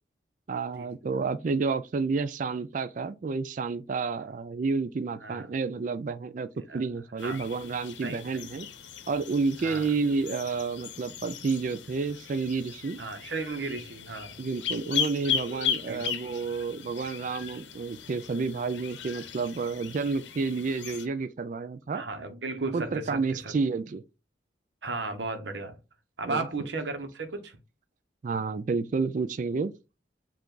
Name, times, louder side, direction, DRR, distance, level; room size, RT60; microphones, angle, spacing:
voice 1, 0.5-8.7 9.1-13.0 14.4-22.0 22.7-24.0 26.2-26.5 28.2-29.7, right 4 dB, 45° right, 0.3 m, -30 dB
sound 1, 7.2-21.1, left 7 dB, 80° left, 0.7 m, -37 dB
voice 2, 8.0-8.4 9.6-9.8 13.0-14.3 15.9-16.0 21.9-23.2 24.8-25.8 26.2-27.6, right 3 dB, 70° right, 0.9 m, -34 dB
5.7 x 2.5 x 3.8 m
head